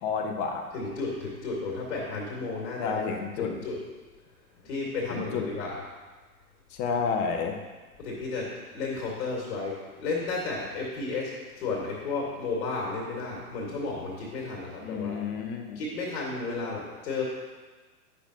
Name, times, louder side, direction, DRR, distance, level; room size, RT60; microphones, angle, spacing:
voice 1, 0.0-0.7 2.8-3.5 5.1-5.5 6.7-7.6 14.8-15.8, left 5 dB, 20° left, 3 dB, 0.6 m, -30 dB
voice 2, 0.7-3.0 3.4-3.8 4.6-5.8 8.0-15.2 15.8-17.3, left 3 dB, 40° left, -3 dB, 2.2 m, -33 dB
9.9 x 6.1 x 2.9 m, 1.3 s
figure-of-eight pair, 105°, 46 cm